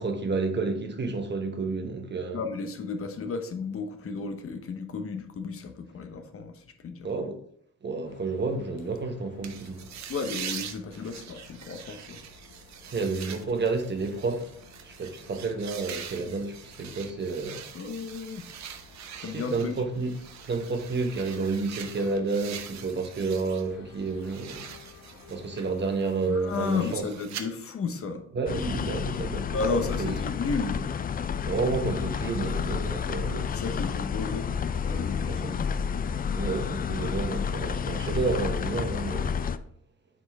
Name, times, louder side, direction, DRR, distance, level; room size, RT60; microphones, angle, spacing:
voice 1, 0.0-2.4 7.0-7.4 7.8-9.9 12.8-14.5 14.8-17.6 19.2-20.2 20.4-24.7 25.3-27.1 28.3-30.2 31.5-33.8 35.2-35.6 36.3-39.4, right 3 dB, 35° right, 1.0 m, -30 dB
voice 2, 2.3-7.1 10.1-12.2 17.7-18.5 19.2-19.7 26.3-28.2 29.5-30.8 33.2-34.5 34.8-35.6, left 4 dB, 45° left, 1.0 m, -33 dB
sound 1, 8.0-27.0, left 4 dB, 80° left, 1.1 m, -52 dB
sound 2, 9.4-23.7 24.0-27.4, right 8 dB, 65° right, 0.8 m, -43 dB
sound 3, 28.5-39.6, left 7 dB, 30° left, 0.4 m, -30 dB
7.4 x 4.4 x 3.5 m
cardioid pair, 90°, 30 cm